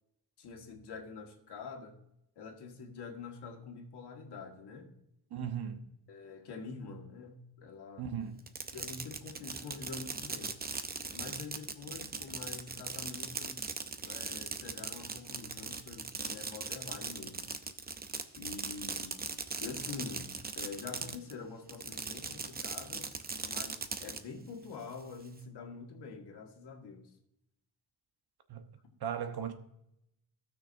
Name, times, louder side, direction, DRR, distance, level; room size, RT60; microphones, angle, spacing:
voice 1, 0.4-1.9 2.4-4.9 6.1-8.1 8.7-10.6 11.1-13.6 14.0-17.5 18.4-19.1 19.6-20.3 20.6-23.1 23.4-27.1, left 4 dB, 80° left, 1.9 m, -46 dB
voice 2, 5.3-5.8 8.0-8.4 28.5-28.6 29.0-29.5, right 8 dB, 70° right, 1.2 m, -37 dB
Fireworks, 8.4-21.3 21.7-24.2, right 4 dB, 25° right, 0.6 m, -39 dB
17.0 x 6.3 x 2.6 m
wide cardioid pair, 170°, 40 cm